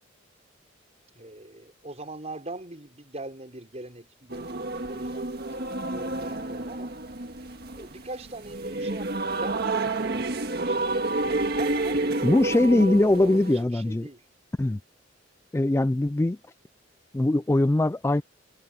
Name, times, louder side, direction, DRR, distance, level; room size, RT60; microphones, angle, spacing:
voice 1, 1.1-5.3 5.6-6.9 7.7-10.3 10.5-14.2, right 2 dB, 35° right, 5.3 m, -41 dB
sound 1, 4.3-13.6, right 2 dB, 55° right, 1.7 m, -29 dB
voice 2, 12.2-14.1 14.6-14.8 15.5-16.4 17.1-18.2, left 1 dB, 15° left, 0.3 m, -21 dB
head